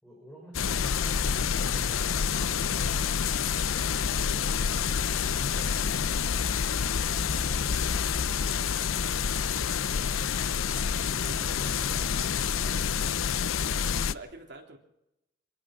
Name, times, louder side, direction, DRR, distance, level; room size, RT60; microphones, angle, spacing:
voice 1, 0.0-3.1 3.6-4.8 10.7-11.4 11.8-12.2 12.5-12.9, equal, 5° left, -1 dB, 5.5 m, -53 dB
sound 1, 0.5-14.1, left 7 dB, 90° left, 0.6 m, -28 dB
voice 2, 11.2-12.0 13.9-14.8, right 2 dB, 55° right, 1 dB, 3.7 m, -46 dB
25.0 x 17.5 x 6.1 m, 0.85 s
head